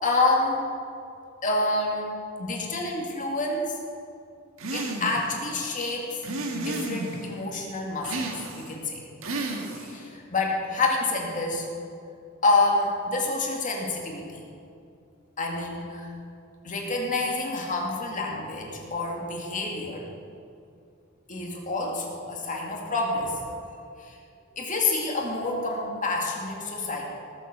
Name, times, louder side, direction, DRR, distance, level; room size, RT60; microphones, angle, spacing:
voice 1, 0.0-0.7 1.4-2.1 2.4-3.8 4.7-6.2 6.5-9.0 9.7-11.7 12.4-14.4 15.4-16.1 16.6-20.1 21.3-23.5 24.0-24.2 24.6-27.0, left 2 dB, 40° left, -1 dB, 2.3 m, -28 dB
sound 1, 4.6-5.3 6.2-7.3 8.0-8.7 9.2-10.0, right 2 dB, 80° right, 1.7 m, -32 dB
19.0 x 7.3 x 6.7 m, 2.5 s
head